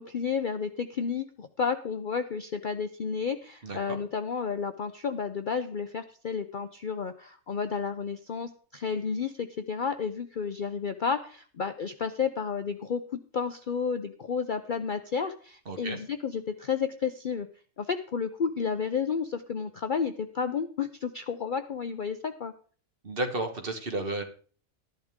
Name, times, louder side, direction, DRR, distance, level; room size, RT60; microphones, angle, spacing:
voice 1, 0.0-17.5 17.8-22.5, left 6 dB, 50° left, 9 dB, 0.6 m, -31 dB
voice 2, 3.6-4.0 15.7-16.0 23.0-24.2, right 2 dB, 40° right, 5 dB, 1.6 m, -32 dB
13.0 x 11.0 x 3.6 m, 0.42 s
omnidirectional pair, 1.5 m